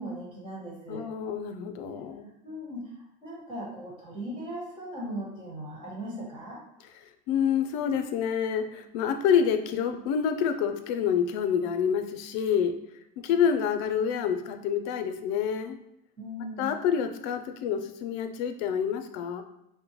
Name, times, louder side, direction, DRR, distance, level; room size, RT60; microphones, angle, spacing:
voice 1, 0.0-1.1 1.9-2.0 2.4-6.6 13.3-13.4 16.2-16.7, equal, 25° right, -4 dB, 1.4 m, -38 dB
voice 2, 0.9-2.3 7.3-12.8 13.2-15.8 16.6-19.4, left 7 dB, 65° left, 8 dB, 0.5 m, -27 dB
5.2 x 2.1 x 3.0 m, 0.82 s
cardioid pair, 145°, 21 cm